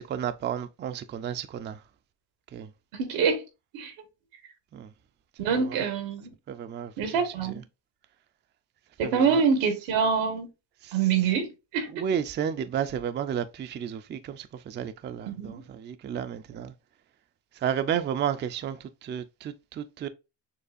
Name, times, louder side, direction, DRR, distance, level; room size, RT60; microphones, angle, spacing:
voice 1, 0.0-1.8 2.5-2.7 4.7-4.9 5.5-5.8 6.5-7.5 9.0-9.4 10.8-11.0 11.9-16.7 17.6-20.1, right 8 dB, 25° right, 0.3 m, -32 dB
voice 2, 3.0-3.4 3.7-3.9 5.4-6.3 7.0-7.6 9.0-10.5 10.9-11.9 15.3-15.6, right 6 dB, 90° right, 1.4 m, -25 dB
6.6 x 2.4 x 2.5 m
cardioid pair, 105°, 45 cm